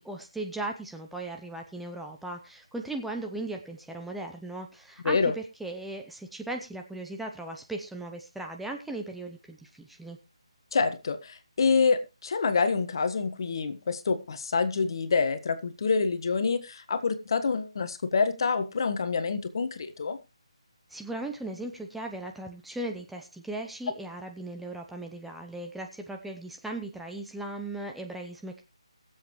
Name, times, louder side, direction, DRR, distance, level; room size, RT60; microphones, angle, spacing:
voice 1, 0.0-10.2 20.9-28.6, right 2 dB, ahead, 2 dB, 0.7 m, -37 dB
voice 2, 10.7-20.2, left 5 dB, 45° left, 10 dB, 1.4 m, -27 dB
21.5 x 7.6 x 3.1 m, 0.28 s
figure-of-eight pair, 155°, 3 cm